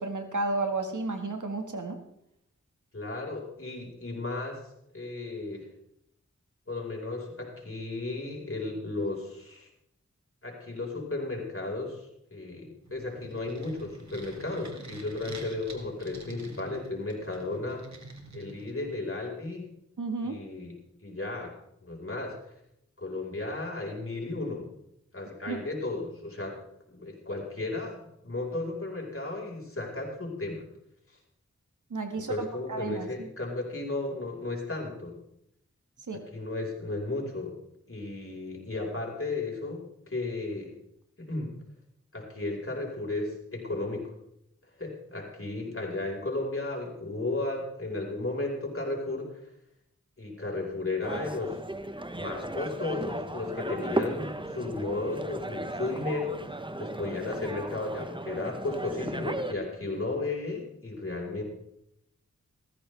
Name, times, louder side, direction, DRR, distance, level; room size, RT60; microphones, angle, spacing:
voice 1, 0.0-2.0 20.0-20.4 25.5-25.6 31.9-33.3 36.1-36.3, right 3 dB, 85° right, 5 dB, 1.7 m, -32 dB
voice 2, 2.9-4.6 4.9-5.7 6.7-9.7 10.4-17.8 18.3-19.7 20.2-20.7 21.0-21.5 21.8-22.4 23.0-24.7 25.1-26.6 26.9-30.7 32.1-35.2 36.1-37.5 37.9-40.7 41.2-41.5 42.1-44.1 44.8-49.5 50.2-51.6 52.1-61.4, left 2 dB, 45° left, -1 dB, 4.7 m, -34 dB
sound 1, 12.8-19.1, right 2 dB, 65° right, 2.3 m, -47 dB
sound 2, 51.0-59.5, right 1 dB, 15° right, 0.9 m, -35 dB
16.5 x 14.0 x 3.4 m, 0.79 s
wide cardioid pair, 45°, 30 cm